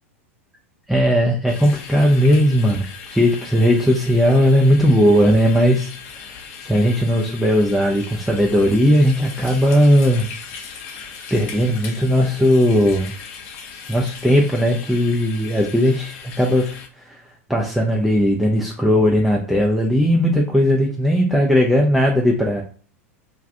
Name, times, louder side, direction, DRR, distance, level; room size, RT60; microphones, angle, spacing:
voice 1, 0.9-6.2 6.6-10.3 11.3-13.1 13.9-17.2 17.5-22.6, equal, ahead, -2 dB, 0.4 m, -17 dB
sound 1, 1.5-16.9, left 6 dB, 45° left, 0.6 m, -38 dB
2.5 x 2.3 x 3.3 m, 0.39 s
figure-of-eight pair, 85°, 7 cm